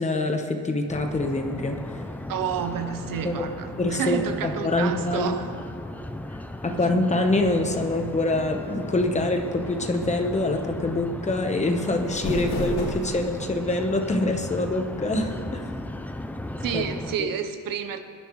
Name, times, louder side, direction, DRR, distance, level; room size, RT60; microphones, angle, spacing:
voice 1, 0.0-1.8 3.2-3.5 3.8-5.4 6.6-15.7 16.7-16.8 17.2-17.3, left 2 dB, 20° left, 4 dB, 1.0 m, -25 dB
sound 1, 0.9-17.2, left 1 dB, 5° left, 0.4 m, -36 dB
voice 2, 2.3-5.7 16.6-18.0, right 8 dB, 90° right, 8 dB, 1.0 m, -30 dB
sound 2, 11.8-13.4, left 1 dB, 85° left, 3.1 m, -31 dB
22.0 x 10.5 x 3.1 m, 2.3 s
wide cardioid pair, 145°, 33 cm